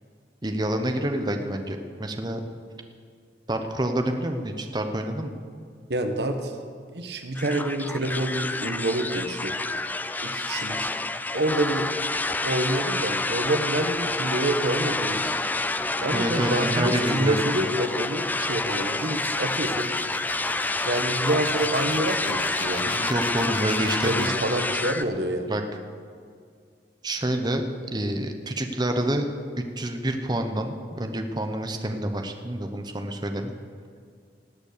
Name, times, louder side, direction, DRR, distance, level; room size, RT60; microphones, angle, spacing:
voice 1, 0.4-2.4 3.5-5.3 16.1-17.3 22.9-24.7 25.5-25.6 27.0-27.6 27.9-29.2 29.8-33.5, right 1 dB, 25° right, 5 dB, 0.9 m, -28 dB
voice 2, 5.9-6.5 6.9-9.5 10.2-10.9 11.3-15.4 16.0-19.9 20.8-23.1 24.0-25.6, right 1 dB, 65° right, 6 dB, 1.2 m, -27 dB
sound 1, 7.3-25.0, left 2 dB, 10° left, 0.3 m, -28 dB
sound 2, 15.1-24.4, left 3 dB, 25° left, 1.3 m, -39 dB
18.5 x 8.2 x 6.7 m, 2.1 s
head